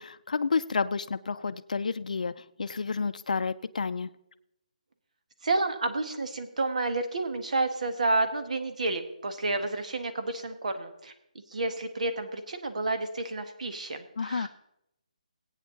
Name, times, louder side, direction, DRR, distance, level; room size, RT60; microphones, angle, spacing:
voice 1, 0.0-4.1 14.2-14.5, left 5 dB, 70° left, 11 dB, 0.5 m, -30 dB
voice 2, 5.4-11.1 11.5-14.5, right 2 dB, 60° right, 8 dB, 1.5 m, -30 dB
16.0 x 8.9 x 3.9 m, 0.80 s
hypercardioid pair, 175°, 4 cm